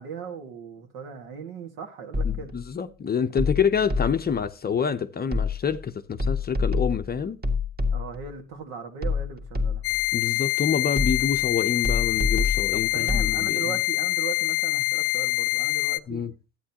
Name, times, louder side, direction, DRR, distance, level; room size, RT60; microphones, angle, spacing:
voice 1, 0.0-2.5 7.9-9.8 12.7-16.2, right 6 dB, 70° right, 2.0 m, -38 dB
sound 1, 2.1-2.7 3.4-4.4 5.3-5.8 6.2-8.3 9.0-10.1 11.0-11.5 11.8-13.3, left 4 dB, 25° right, 1.7 m, -27 dB
voice 2, 2.2-7.4 10.1-13.7 16.1-16.3, left 7 dB, 25° left, 0.6 m, -27 dB
sound 2, 9.8-16.0, left 23 dB, 75° left, 0.6 m, -25 dB
11.5 x 9.0 x 2.9 m
supercardioid pair, 95°, 39 cm